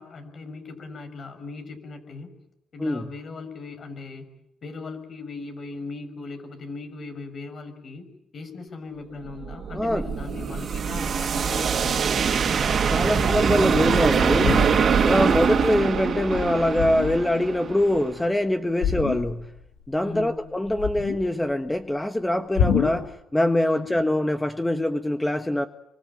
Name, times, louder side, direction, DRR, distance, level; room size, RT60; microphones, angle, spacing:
voice 1, 0.0-2.3 2.7-4.3 4.6-8.1 8.3-12.0 15.1-15.5 20.0-20.4 23.7-23.9, left 4 dB, 50° left, 8 dB, 6.5 m, -38 dB
sound 1, 9.3-18.2, right 6 dB, 50° right, 2.6 m, -23 dB
voice 2, 9.7-10.1 12.9-14.6 15.0-19.5 19.9-25.7, left 1 dB, 10° left, 8 dB, 1.5 m, -24 dB
sound 2, 13.1-13.6 14.2-15.2 15.6-15.8 16.1-17.4 18.8-19.6 19.9-21.5 22.6-23.1, left 7 dB, 90° left, 2.6 m, -28 dB
27.0 x 24.5 x 8.9 m, 0.77 s
cardioid pair, 90°, 0 cm